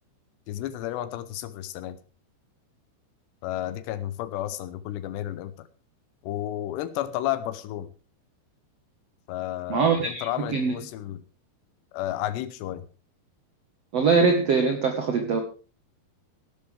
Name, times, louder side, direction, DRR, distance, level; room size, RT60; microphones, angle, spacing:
voice 1, 0.5-2.0 3.4-5.7 6.2-7.9 9.3-11.2 11.9-12.9, left 13 dB, 80° left, 13 dB, 2.8 m, -32 dB
voice 2, 9.7-10.8 13.9-15.4, right 5 dB, 90° right, 5 dB, 1.4 m, -22 dB
17.0 x 11.5 x 3.4 m, 0.35 s
omnidirectional pair, 5.3 m